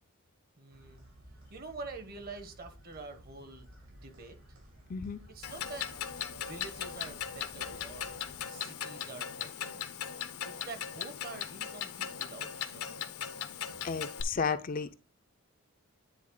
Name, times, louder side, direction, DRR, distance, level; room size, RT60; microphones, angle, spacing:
voice 1, 0.6-1.1 1.5-3.7 4.0-4.3 5.3-5.9 6.3-8.2 8.5-9.8 10.4-13.1, right 3 dB, 45° right, 1.1 m, -46 dB
sound 1, 0.7-8.4, equal, 70° right, 2.8 m, -55 dB
voice 2, 4.9-5.2 13.8-14.9, left 5 dB, 40° left, 0.4 m, -33 dB
Clock, 5.4-14.2, left 9 dB, 85° left, 0.8 m, -39 dB
9.7 x 3.8 x 3.8 m
head